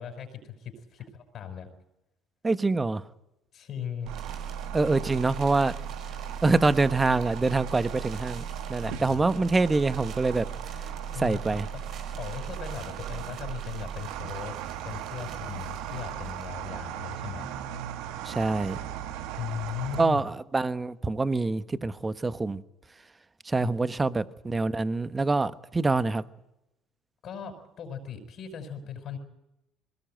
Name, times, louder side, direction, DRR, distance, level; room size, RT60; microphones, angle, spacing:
voice 1, 0.0-1.7 3.5-4.1 4.4-4.6 8.8-9.2 11.1-11.4 11.7-11.8 12.1-14.5 14.8-17.5 19.4-20.2 23.6-23.7 27.2-29.2, left 8 dB, 50° left, 5.8 m, -38 dB
voice 2, 2.4-3.1 4.7-5.7 6.4-10.5 11.1-11.7 18.2-18.8 20.0-22.6 23.4-26.2, right 3 dB, 20° right, 1.2 m, -25 dB
sound 1, 4.1-16.8, right 6 dB, 55° right, 4.9 m, -50 dB
sound 2, 4.1-20.0, right 9 dB, 75° right, 1.7 m, -37 dB
21.5 x 19.0 x 9.2 m
supercardioid pair, 80°, 0 cm